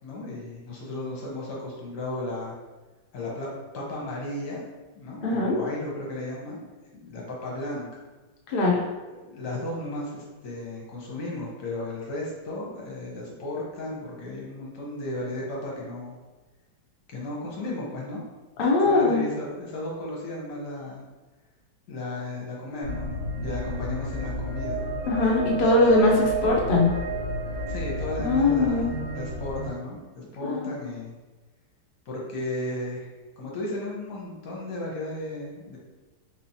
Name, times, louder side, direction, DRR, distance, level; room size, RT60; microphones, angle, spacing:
voice 1, 0.0-2.6 3.1-3.5 3.7-4.6 4.9-7.9 9.2-16.1 17.1-18.2 18.9-21.0 21.9-24.8 27.7-31.1 32.1-33.1 33.4-35.8, left 1 dB, 65° left, -3 dB, 1.5 m, -34 dB
voice 2, 5.2-5.6 8.5-8.8 18.6-19.2 25.1-26.9 28.2-28.9 30.4-30.7, left 2 dB, 90° left, -2 dB, 0.4 m, -21 dB
sound 1, 22.8-29.7, right 1 dB, 65° right, 2.0 m, -31 dB
3.9 x 3.0 x 2.8 m, 1.2 s
omnidirectional pair, 2.0 m